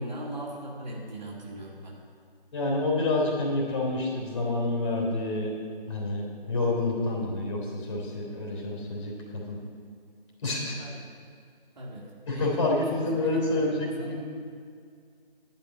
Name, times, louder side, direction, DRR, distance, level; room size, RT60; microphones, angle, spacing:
voice 1, 0.0-2.0 10.8-11.1 11.8-13.4 13.7-14.2, right 1 dB, 50° right, -3 dB, 2.1 m, -39 dB
voice 2, 2.5-5.5 5.9-9.6 10.4-10.7 12.3-14.2, left 2 dB, 30° left, -3 dB, 3.3 m, -28 dB
11.5 x 5.8 x 8.9 m, 2.2 s
figure-of-eight pair, 155°, 29 cm